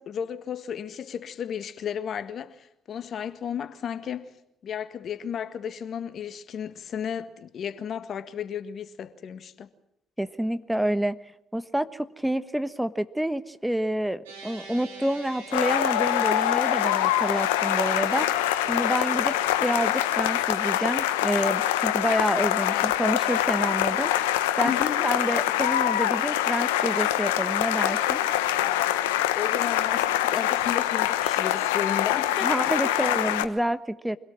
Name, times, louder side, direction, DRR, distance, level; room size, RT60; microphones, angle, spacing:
voice 1, 0.0-4.4 4.6-9.7 22.6-23.2 24.6-25.1 29.3-33.1, left 8 dB, 55° left, 1.7 m, -34 dB
voice 2, 10.2-11.2 11.5-18.3 18.6-24.3 24.6-28.2 32.4-34.2, right 1 dB, 5° right, 1.3 m, -28 dB
sound 1, 14.3-21.1, right 4 dB, 85° right, 5.0 m, -45 dB
sound 2, 15.5-33.5, left 13 dB, 85° left, 1.2 m, -24 dB
25.5 x 17.5 x 7.5 m
hypercardioid pair, 50°, 0 cm